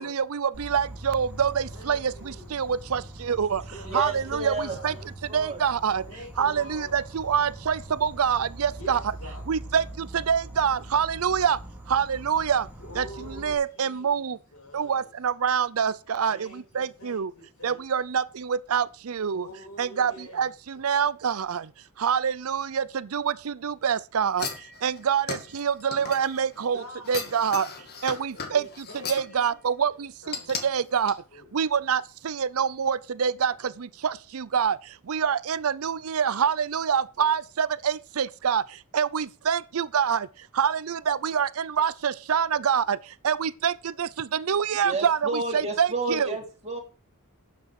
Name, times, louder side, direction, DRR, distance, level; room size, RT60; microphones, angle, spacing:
voice 1, 0.0-3.6 3.9-4.9 5.3-6.1 6.4-9.0 9.5-11.6 11.9-12.7 13.0-14.4 14.7-17.3 17.6-19.5 19.8-21.7 22.0-27.7 28.0-31.2 31.5-46.3, right 7 dB, 70° right, 0.5 m, -26 dB
Insect, 0.5-13.5, right 1 dB, 10° right, 3.8 m, -42 dB
voice 2, 1.7-2.5 3.7-5.1 6.1-6.9 8.8-9.5 12.8-15.1 16.3-17.8 19.3-20.9 26.7-27.3 28.3-31.0 31.3-31.5, left 1 dB, 70° left, 5.7 m, -46 dB
voice 3, 3.8-5.6 44.8-46.8, right 3 dB, 30° right, 3.2 m, -31 dB
sound 1, 24.4-26.6 27.1-29.3 30.3-30.6 31.1-31.2, left 5 dB, 45° left, 2.0 m, -36 dB
12.0 x 8.6 x 4.8 m
head